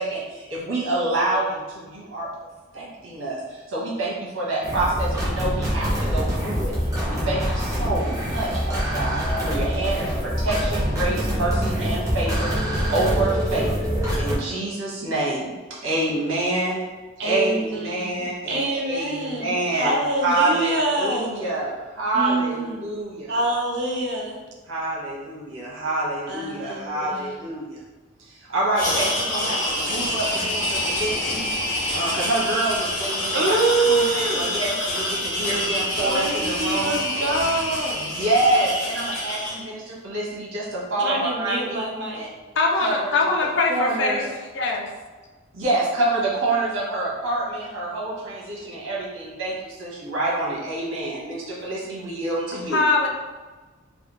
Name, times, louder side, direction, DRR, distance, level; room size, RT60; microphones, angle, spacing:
voice 1, 0.0-2.3 2.7-6.7 7.0-12.5 12.9-13.7 14.2-15.5 15.8-16.8 17.2-20.7 21.0-23.4 24.7-27.8 28.3-31.5 31.9-33.6 33.9-34.0 34.3-36.9 38.0-41.6 42.1-42.3 42.8-43.3 43.7-44.2 45.5-52.8, right 2 dB, 85° right, -5 dB, 1.1 m, -27 dB
sound 1, 4.6-14.4, equal, 15° right, 0.8 m, -25 dB
voice 2, 17.2-21.3 22.1-22.9 23.3-24.4 26.3-27.4 33.3-34.5 36.0-38.0 41.0-42.2, right 2 dB, 55° right, -1 dB, 0.6 m, -25 dB
sound 2, 28.7-39.6, left 1 dB, 80° left, 1.2 m, -26 dB
voice 3, 42.6-44.3 44.5-44.9 52.7-53.1, left 3 dB, 60° left, 0 dB, 0.5 m, -22 dB
3.3 x 2.4 x 3.0 m, 1.3 s
head